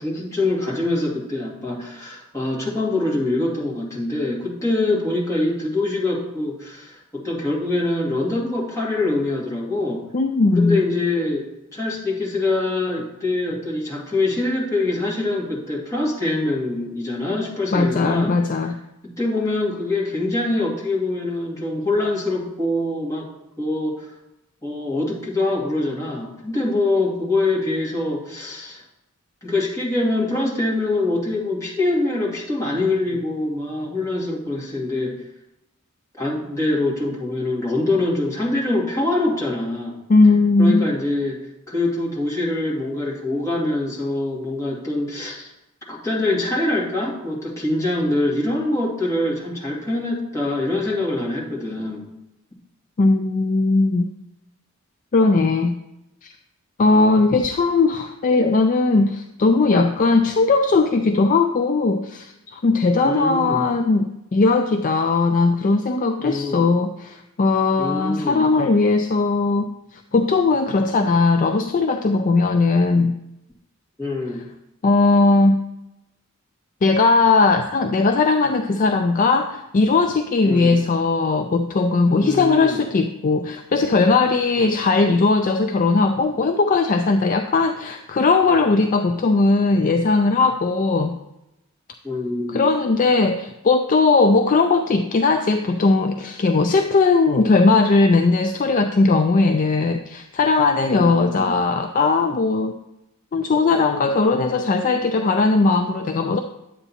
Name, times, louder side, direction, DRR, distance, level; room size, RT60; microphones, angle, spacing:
voice 1, 0.0-10.0 10.5-18.4 19.0-23.3 23.6-24.1 24.6-28.8 29.4-35.2 36.2-40.0 40.6-41.4 41.7-45.5 45.9-52.1 63.0-63.6 66.2-66.7 67.8-68.5 74.0-74.5 80.4-80.8 82.2-82.8 84.6-84.7 92.0-92.7 100.9-101.5, left 2 dB, 15° left, -5 dB, 2.1 m, -24 dB
voice 2, 10.1-10.8 17.7-18.8 40.1-40.9 53.0-54.1 55.1-55.8 56.2-56.3 56.8-69.7 70.1-73.2 74.8-75.6 76.8-91.2 92.5-102.7 103.3-106.4, left 3 dB, 40° left, 6 dB, 0.4 m, -18 dB
9.9 x 8.0 x 2.8 m, 0.89 s
head